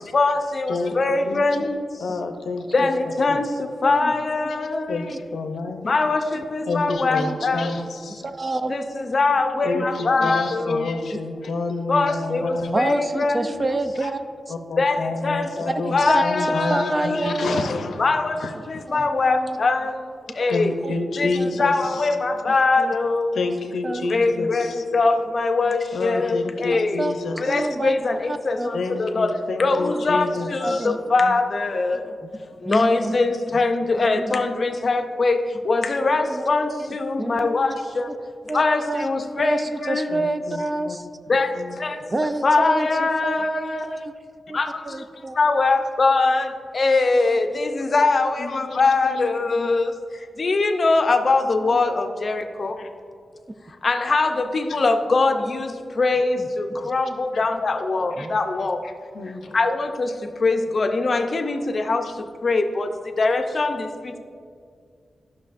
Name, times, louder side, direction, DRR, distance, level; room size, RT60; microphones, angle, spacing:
voice 1, 0.0-2.0 2.7-5.1 5.8-7.7 8.7-10.9 11.9-13.7 14.8-17.3 18.0-20.7 21.2-21.3 21.6-23.4 24.1-27.0 27.4-29.3 29.6-32.2 32.5-38.1 38.5-40.2 41.3-44.0 44.5-45.0 45.3-52.8 53.8-58.9 59.5-64.2, left 3 dB, 40° left, 6 dB, 0.5 m, -22 dB
voice 2, 2.0-2.7 4.9-5.8 6.7-8.2 9.6-12.8 14.0-14.1 14.5-18.0 18.4-18.8 20.5-22.1 23.3-24.8 25.9-27.6 28.7-30.9 40.1-40.2 40.5-41.0 41.5-41.8 48.4-49.3 49.5-49.8 52.8-52.9 54.7-54.8 57.3-57.4 58.2-58.3 58.8-59.6, left 3 dB, 90° left, 6 dB, 0.6 m, -29 dB
voice 3, 8.2-8.8 10.2-10.3 12.7-14.2 16.1-17.7 18.9-19.6 20.8-20.9 21.4-21.5 22.8-22.9 23.8-24.1 24.4-24.5 27.0-27.1 27.5-27.9 28.3-28.7 30.6-31.3 32.2-32.3 32.7-33.1 34.2-34.3 36.2-36.4 36.8-37.4 38.5-39.1 39.4-41.1 42.1-44.1 44.5-44.6 44.8-45.4 51.6-51.8 56.4-56.8 58.2-58.4, right 2 dB, 25° right, 8 dB, 0.4 m, -28 dB
12.5 x 5.9 x 2.5 m, 2.2 s
wide cardioid pair, 150°, 0 cm